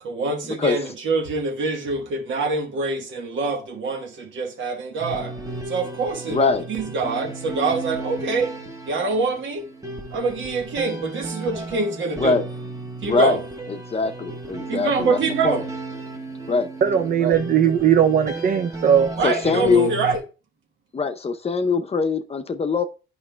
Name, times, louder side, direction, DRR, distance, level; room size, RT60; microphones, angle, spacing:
voice 1, 0.0-5.4 5.7-8.6 8.8-9.7 10.1-12.4 13.0-13.4 14.7-15.7 19.1-20.2, right 3 dB, 70° right, 1.3 m, -25 dB
sound 1, 5.0-20.2, right 2 dB, 15° right, 1.1 m, -34 dB
voice 2, 6.3-6.6 12.2-12.4 13.0-13.4 13.7-15.2 15.4-15.6 16.5-16.7 16.9-17.1 19.2-19.9 20.9-22.8, left 4 dB, 30° left, 0.7 m, -22 dB
voice 3, 16.8-19.1, right 8 dB, 50° right, 0.6 m, -18 dB
9.7 x 5.3 x 2.2 m
cardioid pair, 90°, 20 cm